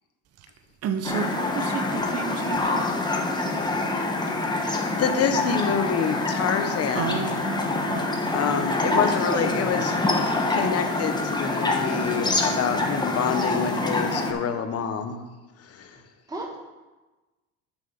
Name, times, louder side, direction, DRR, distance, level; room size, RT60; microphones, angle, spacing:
voice 1, 0.8-2.9 6.9-8.6 8.9-9.0, right 7 dB, 50° right, 0.9 m, -32 dB
sound 1, 1.0-14.3, left 2 dB, 15° left, 1.3 m, -26 dB
voice 2, 4.6-7.3 8.3-15.2 15.6-16.0, left 6 dB, 50° left, 1.2 m, -27 dB
voice 3, 8.8-9.8 16.3-16.6, right 1 dB, 10° right, 1.8 m, -32 dB
6.5 x 6.1 x 7.4 m
supercardioid pair, 90°, 32 cm